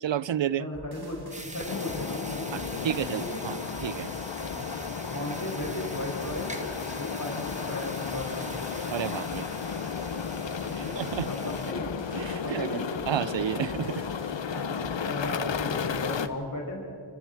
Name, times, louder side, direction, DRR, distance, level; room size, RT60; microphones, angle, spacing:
voice 1, 0.0-0.7 2.5-3.6 3.8-4.1 8.9-9.5 10.8-11.3 12.1-12.8 13.1-14.1, right 10 dB, 85° right, 0.6 m, -31 dB
voice 2, 0.6-1.3 1.5-3.4 4.4-4.6 5.1-6.5 6.9-8.5 10.6-11.9 12.4-12.9 14.5-16.8, left 1 dB, 50° left, 7.2 m, -36 dB
sound 1, 0.7-2.0 2.5-16.3, right 1 dB, 60° right, 2.9 m, -45 dB
sound 2, 1.3-11.7, right 1 dB, 15° right, 1.9 m, -43 dB
sound 3, 1.7-16.3, left 7 dB, 90° left, 0.8 m, -34 dB
28.0 x 25.5 x 4.7 m
wide cardioid pair, 55°, 43 cm